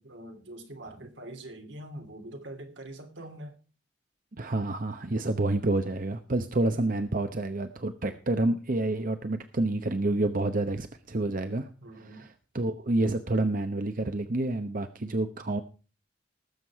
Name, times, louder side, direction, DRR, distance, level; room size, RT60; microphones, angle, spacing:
voice 1, 0.0-3.6 11.8-12.3, right 1 dB, 80° right, 2.8 m, -44 dB
voice 2, 4.3-11.7 11.9-15.6, right 2 dB, 50° right, 0.9 m, -28 dB
19.0 x 7.4 x 4.7 m
head